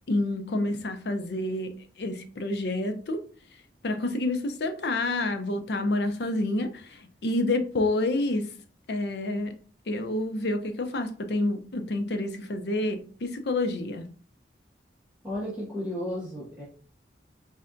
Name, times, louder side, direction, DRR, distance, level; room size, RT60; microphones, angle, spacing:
voice 1, 0.1-1.7 2.0-3.2 3.8-8.5 8.9-9.5 9.9-14.1, left 2 dB, 65° left, 0.5 m, -28 dB
voice 2, 15.2-16.6, left 1 dB, 10° right, 1.3 m, -33 dB
4.1 x 3.2 x 2.5 m
head